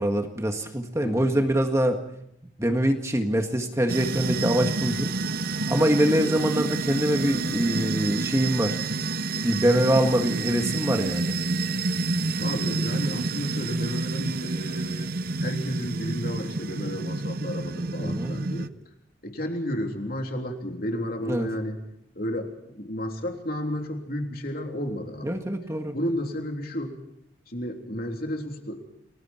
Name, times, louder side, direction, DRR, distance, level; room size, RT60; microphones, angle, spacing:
voice 1, 0.0-2.0 2.6-5.1 5.7-8.8 9.4-11.4 18.0-18.3 21.3-21.5 25.2-25.9, right 1 dB, 15° right, 4 dB, 1.7 m, -24 dB
voice 2, 1.0-1.3 6.1-6.3 12.4-15.1 15.4-18.7 19.2-21.8 22.1-25.4 25.9-26.9 27.5-28.8, equal, 50° left, 3 dB, 3.4 m, -32 dB
sound 1, 3.9-18.7, right 3 dB, 50° right, 0.7 m, -29 dB
29.5 x 20.5 x 4.5 m, 0.77 s
head